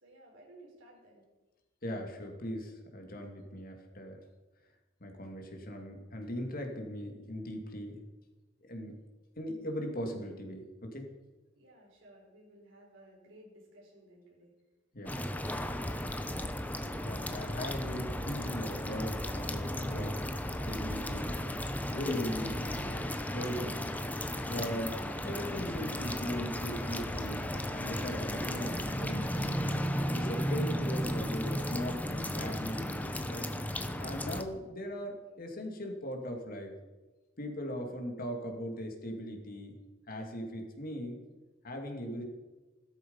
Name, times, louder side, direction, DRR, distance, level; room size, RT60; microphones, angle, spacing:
voice 1, 0.0-1.2 11.5-14.5 15.2-16.0, right 1 dB, 85° right, -2 dB, 5.1 m, -57 dB
voice 2, 1.8-4.2 5.0-8.0 8.7-8.9 9.4-11.1 14.9-15.2 17.0-20.2 20.5-21.3 21.9-23.9 24.4-25.0 25.2-27.5 27.7-29.5 30.1-33.5 34.0-36.7 37.4-39.8 40.1-41.2 41.6-42.3, equal, 50° left, 3 dB, 2.5 m, -39 dB
sound 1, 15.1-34.4, equal, 10° left, 0.9 m, -35 dB
16.0 x 13.0 x 5.6 m, 1.2 s
head